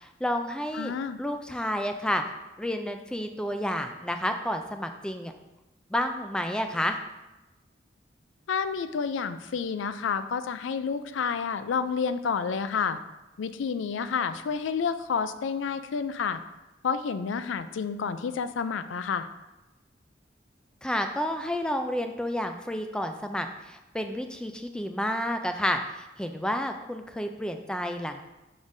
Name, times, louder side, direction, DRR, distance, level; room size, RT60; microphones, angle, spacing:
voice 1, 0.0-0.9 1.2-2.2 2.6-5.3 5.9-7.0 20.8-28.2, equal, 5° left, 6 dB, 0.3 m, -30 dB
voice 2, 0.7-1.2 8.5-13.0 13.4-16.4 16.8-19.3, left 6 dB, 85° left, 12 dB, 0.4 m, -29 dB
7.1 x 5.1 x 2.6 m, 1.0 s
head